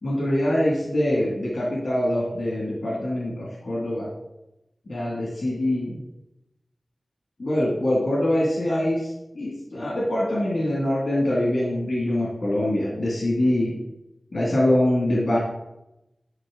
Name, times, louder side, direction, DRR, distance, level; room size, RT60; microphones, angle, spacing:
voice 1, 0.0-4.1 4.9-6.0 7.4-13.8 14.3-15.4, left 1 dB, 85° left, -3 dB, 2.1 m, -24 dB
11.0 x 5.4 x 3.8 m, 0.90 s
wide cardioid pair, 65°, 0 cm